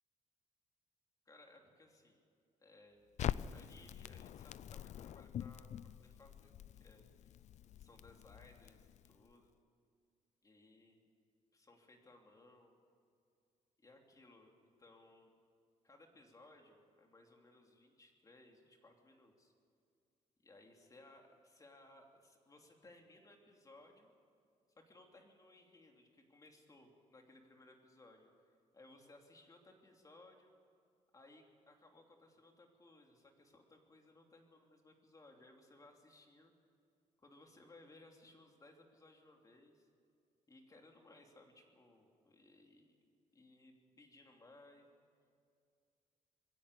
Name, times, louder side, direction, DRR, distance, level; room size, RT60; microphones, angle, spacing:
voice 1, 1.3-2.2 2.6-3.1 3.5-5.7 6.0-7.3 7.8-9.5 10.4-11.0 11.5-12.7 13.8-15.3 15.8-19.5 20.4-24.1 24.8-30.5 31.1-36.5 37.2-39.9 40.5-44.9, left 2 dB, 25° left, 2 dB, 2.9 m, -62 dB
Crackle, 3.2-9.3, left 10 dB, 60° left, 0.5 m, -45 dB
21.0 x 16.5 x 8.4 m, 2.3 s
cardioid pair, 120°, 14 cm